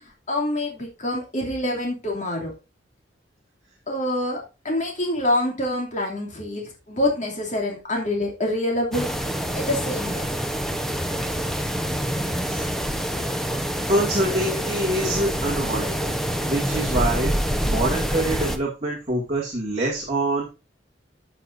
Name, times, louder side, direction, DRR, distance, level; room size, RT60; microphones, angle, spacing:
voice 1, 0.3-2.5 3.9-9.1 9.5-10.3, left 1 dB, 40° left, -1 dB, 2.9 m, -26 dB
sound 1, 8.9-18.6, equal, ahead, 1.0 m, -26 dB
voice 2, 13.9-16.1 16.4-17.3 17.7-20.5, right 1 dB, 35° right, -4 dB, 2.4 m, -25 dB
13.5 x 6.9 x 2.7 m, 0.28 s
head